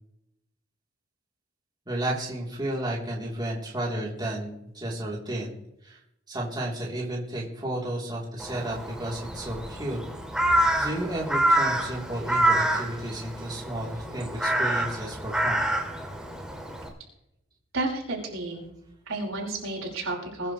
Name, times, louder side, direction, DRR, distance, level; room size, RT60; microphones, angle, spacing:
voice 1, 1.9-5.5 5.8-6.0 6.3-10.0 10.3-15.6, right 1 dB, 20° right, -4 dB, 3.7 m, -32 dB
Crow, 8.4-16.9, right 1 dB, 5° right, 2.5 m, -27 dB
voice 2, 17.7-18.7 19.1-20.5, right 2 dB, 70° right, -1 dB, 5.3 m, -31 dB
22.0 x 11.0 x 3.3 m, 0.80 s
head